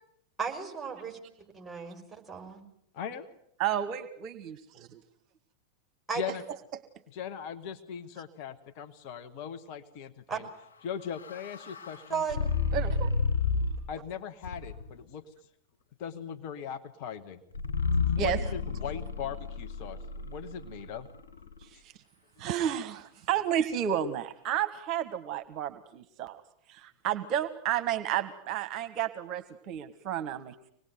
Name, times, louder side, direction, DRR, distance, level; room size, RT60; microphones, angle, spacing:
voice 1, 0.4-2.6 6.1-6.2 10.3-10.4 12.1-12.5, right 6 dB, 5° right, 1 dB, 5.8 m, -35 dB
voice 2, 2.9-3.3 6.1-6.4 7.1-10.5 10.8-12.2 13.9-15.2 16.0-17.4 18.2-21.1, left 8 dB, 45° left, 8 dB, 1.7 m, -39 dB
voice 3, 3.6-5.0 6.3-6.4 12.7-13.1 18.2-18.4 21.6-21.9 22.4-26.4 26.7-30.5, right 10 dB, 40° right, 10 dB, 1.4 m, -32 dB
sound 1, 10.6-14.0 14.4-15.0 17.5-21.6, left 4 dB, 70° left, 6.4 m, -32 dB
25.5 x 20.0 x 9.5 m, 0.71 s
figure-of-eight pair, 90°, 0 cm